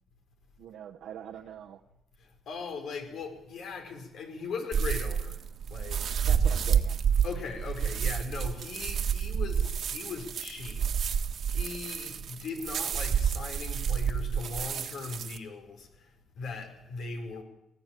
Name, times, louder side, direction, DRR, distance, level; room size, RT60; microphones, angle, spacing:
voice 1, 0.6-1.8 6.2-7.0, right 9 dB, 80° right, 1 dB, 1.2 m, -43 dB
voice 2, 2.2-5.4 5.7-6.2 7.2-17.4, left 4 dB, 70° left, 6 dB, 4.7 m, -39 dB
sound 1, 4.7-15.4, right 7 dB, 60° right, 1.7 m, -29 dB
19.5 x 15.0 x 9.2 m, 0.88 s
cardioid pair, 90°, 0 cm